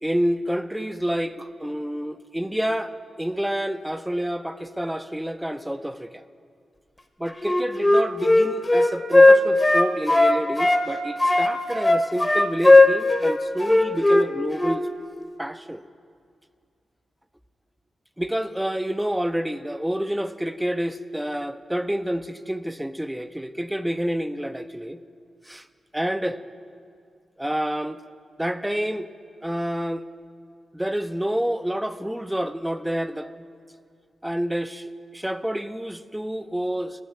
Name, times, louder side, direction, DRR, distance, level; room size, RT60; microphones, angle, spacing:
voice 1, 0.0-6.2 7.2-14.8 15.4-15.9 18.2-25.0 25.5-25.6 25.9-26.4 27.4-28.0 28.4-29.1 29.4-30.0 30.7-33.3 34.2-37.0, equal, 5° right, 12 dB, 0.5 m, -28 dB
Wind instrument woodwind instrument, 7.4-10.8 11.2-14.3 14.6-14.8, left 2 dB, 20° left, 0.9 m, -16 dB
9.5 x 7.2 x 7.8 m, 2.3 s
supercardioid pair, 45°, 0 cm